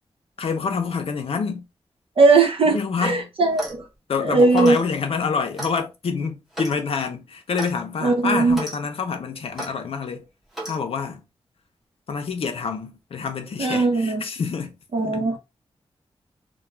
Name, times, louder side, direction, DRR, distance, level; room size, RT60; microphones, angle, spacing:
voice 1, 0.4-1.6 2.7-3.3 4.1-10.3 10.7-11.2 12.1-14.7 15.0-15.2, left 5 dB, 65° left, 0.6 m, -27 dB
voice 2, 2.2-3.7 4.2-4.8 8.0-8.6 13.6-14.2 14.9-15.4, right 3 dB, 65° right, 0.8 m, -18 dB
Clock, 3.4-3.9 4.5-4.8 5.6-5.8 6.5-6.8 7.6-7.7 8.5-8.8 9.6-9.7 10.5-10.8, right 1 dB, 5° right, 0.7 m, -34 dB
2.3 x 2.2 x 3.0 m
wide cardioid pair, 145°, 10 cm